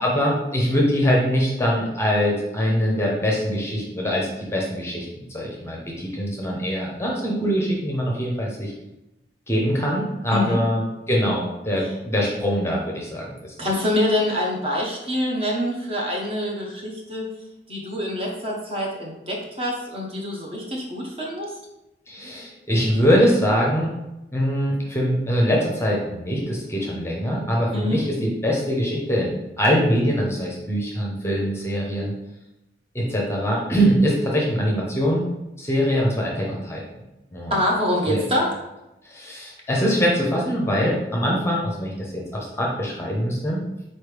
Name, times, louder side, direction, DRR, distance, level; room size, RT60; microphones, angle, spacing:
voice 1, 0.0-8.7 9.5-13.5 22.1-23.9 24.3-32.1 32.9-35.2 35.6-36.8 37.3-37.5 38.1-38.2 39.0-43.6, equal, 15° left, -2 dB, 0.6 m, -23 dB
voice 2, 13.6-17.2 17.7-21.5 27.7-28.0 37.5-38.6, left 1 dB, 30° right, -2 dB, 0.8 m, -25 dB
4.2 x 3.2 x 3.2 m, 0.96 s
head